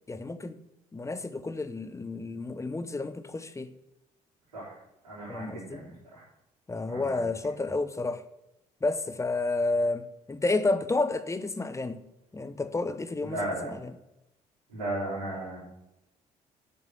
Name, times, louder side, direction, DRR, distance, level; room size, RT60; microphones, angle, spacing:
voice 1, 0.1-0.6 0.9-3.7 5.3-5.9 6.7-8.2 8.8-12.0 12.3-13.4 13.6-13.9, left 3 dB, 15° left, 0.8 m, -30 dB
voice 2, 5.0-5.9 6.1-6.2 6.9-7.2 13.2-13.7 14.7-15.6, right 1 dB, 80° right, 4.0 m, -35 dB
8.3 x 6.8 x 6.6 m
figure-of-eight pair, 50°, 19 cm